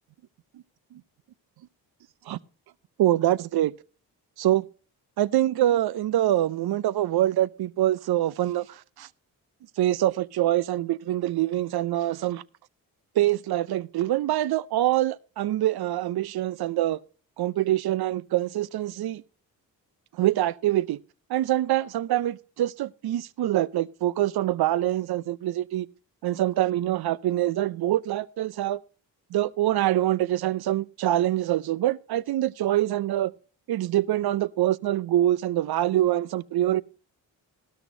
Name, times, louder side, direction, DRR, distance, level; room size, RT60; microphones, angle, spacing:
voice 1, 3.0-3.7 4.4-4.7 5.2-9.1 9.8-12.4 13.1-17.0 17.4-19.2 20.1-21.0 21.3-25.9 26.2-28.8 29.3-33.3 33.7-36.8, right 13 dB, 55° right, 0.7 m, -25 dB
14.0 x 13.0 x 2.7 m
hypercardioid pair, 40°, 45 cm